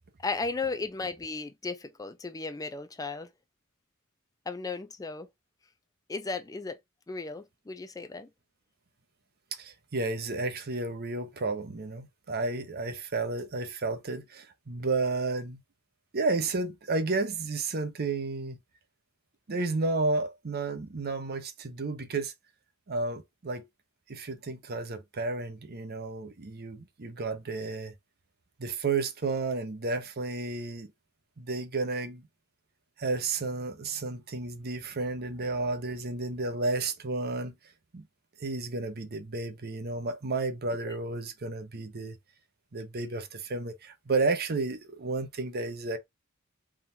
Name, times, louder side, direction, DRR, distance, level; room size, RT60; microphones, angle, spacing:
voice 1, 0.2-3.3 4.5-5.3 6.1-6.8 7.1-8.3 40.9-41.0, left 4 dB, 15° left, 0.4 m, -35 dB
voice 2, 9.5-15.6 16.1-18.6 19.5-22.3 22.9-23.7 24.1-27.9 28.6-30.9 31.4-32.2 33.0-37.5 37.9-38.1 38.4-42.2 42.7-46.0, right 3 dB, 50° right, 0.8 m, -32 dB
3.7 x 2.4 x 4.2 m
head